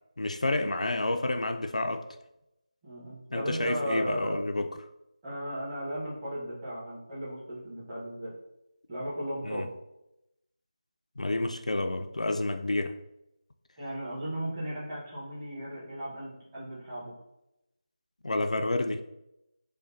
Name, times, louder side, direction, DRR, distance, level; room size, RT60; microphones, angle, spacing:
voice 1, 0.2-2.1 3.3-4.7 9.4-9.7 11.2-12.9 18.2-19.0, left 2 dB, 85° left, 7 dB, 0.3 m, -29 dB
voice 2, 2.8-4.4 5.2-8.3 8.9-9.7 13.8-17.1, equal, 20° right, -9 dB, 1.1 m, -36 dB
5.0 x 2.1 x 2.7 m, 0.88 s
figure-of-eight pair, 170°, 4 cm